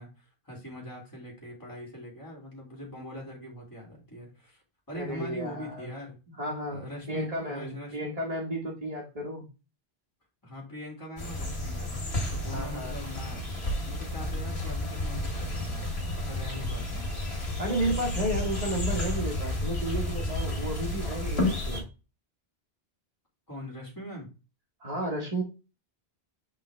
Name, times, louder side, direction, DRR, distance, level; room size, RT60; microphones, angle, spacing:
voice 1, 0.0-6.2 6.7-8.0 10.4-12.0 12.3-13.4 13.8-15.9 16.3-17.1 23.5-24.3, equal, 20° left, -2 dB, 2.1 m, -42 dB
voice 2, 4.9-5.9 6.3-9.5 12.5-13.0 17.6-21.9 24.8-25.4, right 1 dB, 35° right, -2 dB, 1.5 m, -33 dB
sound 1, 11.2-21.8, left 1 dB, 85° left, 2.3 m, -31 dB
7.5 x 3.9 x 3.2 m, 0.31 s
omnidirectional pair, 1.1 m